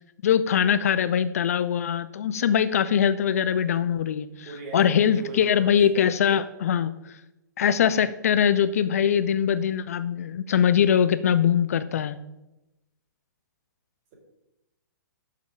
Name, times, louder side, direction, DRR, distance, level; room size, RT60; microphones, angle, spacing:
voice 1, 0.2-6.9 7.6-12.2, left 8 dB, 50° left, 13 dB, 0.4 m, -22 dB
voice 2, 4.4-5.7, right 3 dB, 40° right, 0 dB, 3.2 m, -37 dB
7.9 x 6.6 x 5.1 m, 0.95 s
figure-of-eight pair, 115°, 10 cm